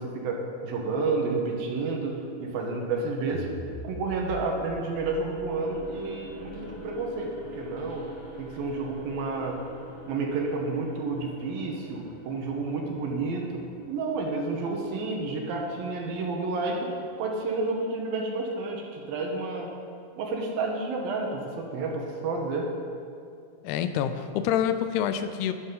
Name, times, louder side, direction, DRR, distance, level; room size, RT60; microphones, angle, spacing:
voice 1, 0.0-3.5 3.8-8.1 8.4-9.6 10.1-13.6 13.9-16.9 17.2-19.7 20.2-22.7, right 3 dB, 70° right, 0 dB, 2.7 m, -30 dB
sound 1, 3.3-9.6, right 1 dB, 90° right, 1.5 m, -44 dB
sound 2, 5.4-17.4, left 1 dB, 35° left, 4.0 m, -46 dB
voice 2, 23.6-25.5, left 9 dB, 85° left, 10 dB, 2.6 m, -27 dB
12.5 x 11.5 x 3.8 m, 2.4 s
omnidirectional pair, 4.7 m